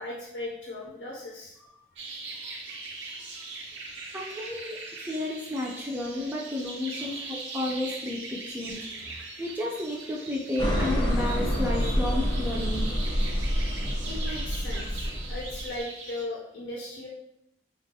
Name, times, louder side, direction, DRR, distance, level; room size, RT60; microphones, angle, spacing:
voice 1, 0.0-1.6 4.5-4.6 7.0-7.3 14.1-17.1, left 1 dB, 90° left, -4 dB, 0.6 m, -38 dB
sound 1, 2.0-16.2, right 3 dB, 85° right, 0.6 m, -40 dB
voice 2, 4.1-13.1, left 1 dB, 10° right, -4 dB, 0.3 m, -32 dB
sound 2, 10.6-15.8, equal, 30° left, 0.6 m, -28 dB
3.4 x 2.2 x 2.7 m, 0.81 s
head